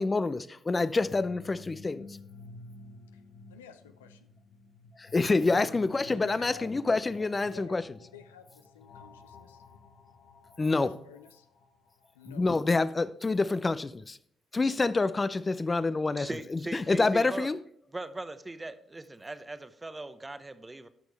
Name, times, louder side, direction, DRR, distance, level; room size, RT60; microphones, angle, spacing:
voice 1, 0.0-2.1 5.0-7.8 10.6-10.9 12.3-14.2 14.5-17.6, left 3 dB, 30° left, 0.6 m, -27 dB
sound 1, 0.8-12.6, left 3 dB, 65° left, 1.1 m, -52 dB
voice 2, 3.5-4.2 5.4-5.7 6.0-6.7 7.4-9.6 10.7-11.5 12.1-12.5, left 8 dB, 85° left, 0.5 m, -49 dB
voice 3, 16.2-17.5 17.9-20.9, right 2 dB, 20° right, 0.9 m, -39 dB
12.0 x 6.2 x 3.4 m
hypercardioid pair, 45°, 0 cm